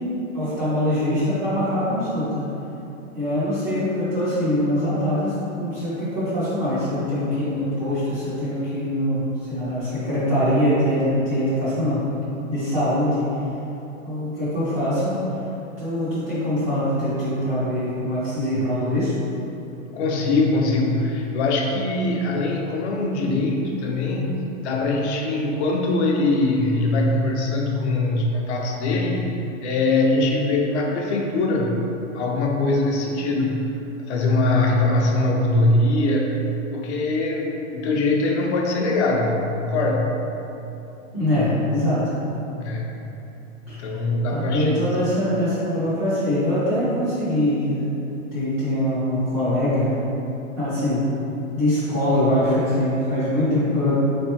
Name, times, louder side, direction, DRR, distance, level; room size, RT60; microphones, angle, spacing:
voice 1, 0.3-2.5 3.1-12.0 12.5-13.3 14.0-15.2 15.8-19.1 41.1-42.2 43.7-43.8 44.3-47.9 48.3-49.9 50.6-51.0 51.5-54.0, left 1 dB, 15° right, -13 dB, 0.4 m, -23 dB
voice 2, 19.9-24.3 24.6-29.3 29.6-31.8 32.1-33.7 34.0-36.3 36.7-40.2 42.6-42.9 43.7-44.8, left 2 dB, 55° left, 0 dB, 0.6 m, -22 dB
3.6 x 3.3 x 2.8 m, 2.9 s
supercardioid pair, 165°, 40 cm